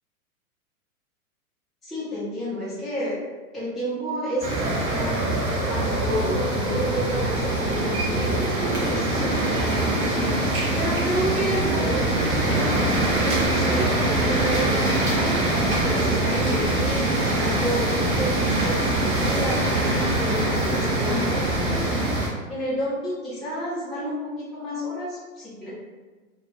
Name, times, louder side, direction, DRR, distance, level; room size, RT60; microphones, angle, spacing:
voice 1, 1.8-3.2 3.5-5.3 5.7-15.4 15.8-17.9 18.2-22.1 22.5-25.7, equal, ahead, -11 dB, 0.6 m, -31 dB
sound 1, 4.4-22.3, right 1 dB, 30° right, 0.8 m, -24 dB
sound 2, 4.5-21.8, right 1 dB, 80° right, 0.7 m, -32 dB
2.4 x 2.2 x 3.1 m, 1.3 s
hypercardioid pair, 110°, 44 cm